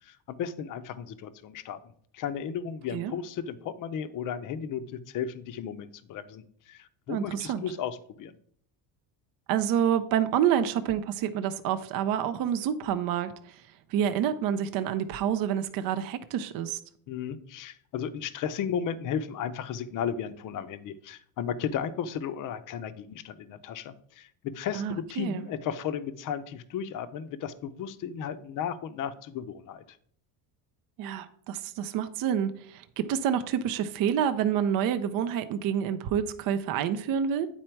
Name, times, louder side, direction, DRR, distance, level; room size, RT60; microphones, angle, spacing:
voice 1, 0.0-1.8 2.1-8.4 17.1-30.0, left 8 dB, 40° left, 13 dB, 0.6 m, -34 dB
voice 2, 7.1-7.6 9.5-13.6 13.9-16.8 24.7-25.4 31.0-37.5, right 9 dB, 45° right, 10 dB, 0.5 m, -28 dB
9.0 x 4.3 x 4.5 m, 0.63 s
cardioid pair, 140°, 49 cm